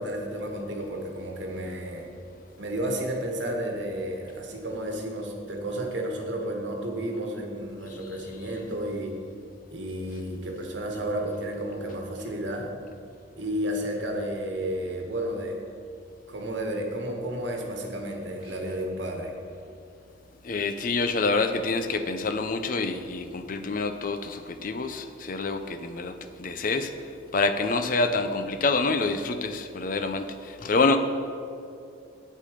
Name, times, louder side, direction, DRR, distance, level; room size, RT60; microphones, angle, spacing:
voice 1, 0.0-2.1 2.6-9.2 9.7-12.7 13.4-15.6 16.3-19.3, right 1 dB, 75° right, 2 dB, 1.5 m, -32 dB
voice 2, 20.4-26.9 27.3-31.0, left 3 dB, 45° left, 9 dB, 0.5 m, -27 dB
8.5 x 8.4 x 5.0 m, 2.5 s
head